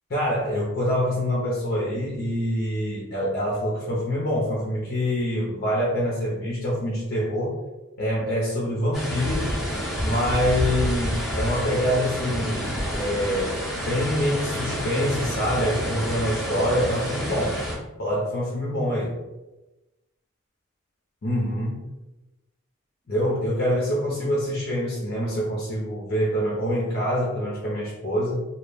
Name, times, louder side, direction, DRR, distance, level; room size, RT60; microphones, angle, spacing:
voice 1, 0.1-7.6 8.0-9.6 10.0-17.6 18.0-19.2 21.2-21.8 23.1-28.4, equal, 45° left, -5 dB, 0.5 m, -25 dB
sound 1, 8.9-17.8, equal, ahead, 0.6 m, -28 dB
2.2 x 2.0 x 3.2 m, 1.0 s
head